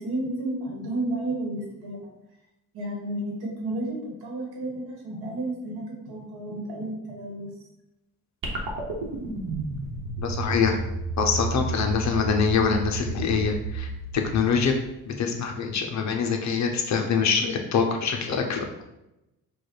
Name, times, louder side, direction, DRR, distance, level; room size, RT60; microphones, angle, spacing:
voice 1, 0.0-2.0 2.7-7.5, right 1 dB, 90° right, -1 dB, 1.5 m, -32 dB
sound 1, 8.4-14.9, right 3 dB, 65° right, 1.1 m, -32 dB
voice 2, 10.2-10.8 11.2-14.8 15.1-18.7, left 6 dB, 50° left, 3 dB, 0.7 m, -24 dB
4.7 x 2.4 x 4.7 m, 0.90 s
cardioid pair, 165°, 37 cm